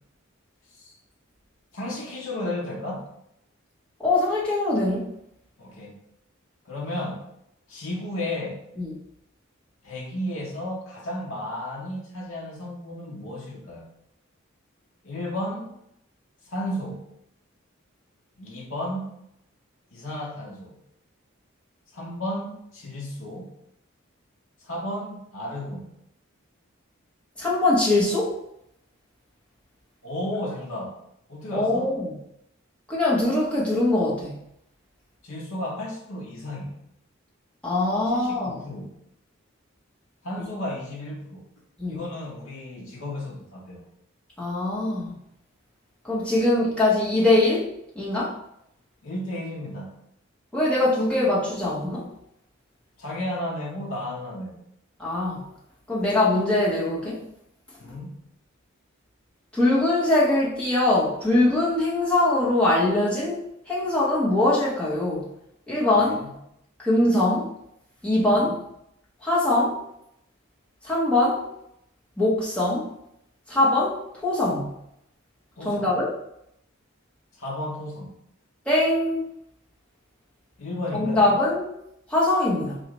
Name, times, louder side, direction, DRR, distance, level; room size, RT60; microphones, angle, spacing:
voice 1, 1.7-3.1 5.6-5.9 6.7-7.2 7.7-8.6 9.8-13.8 15.0-15.7 16.5-17.1 18.4-19.1 19.9-20.8 21.9-23.5 24.6-25.9 30.0-31.0 31.3-31.9 35.2-36.8 38.1-39.0 40.2-41.4 41.9-43.8 49.0-50.0 53.0-54.6 57.8-58.2 65.9-66.3 68.3-68.4 75.6-75.9 77.4-78.1 80.6-81.2, left 1 dB, 75° left, -3 dB, 0.7 m, -33 dB
voice 2, 4.0-5.1 8.8-9.0 27.4-28.4 31.5-32.2 32.9-34.4 37.6-38.6 41.8-42.0 44.4-45.2 46.0-47.7 47.9-48.3 50.5-52.1 55.0-55.4 55.9-57.2 59.5-65.3 65.7-66.3 66.8-67.5 68.0-68.6 69.2-69.8 70.8-71.4 72.2-72.9 73.5-74.7 75.6-76.1 78.7-79.3 80.9-81.7 82.1-82.8, left 2 dB, 5° left, -7 dB, 0.8 m, -22 dB
4.0 x 2.4 x 2.9 m, 0.78 s
head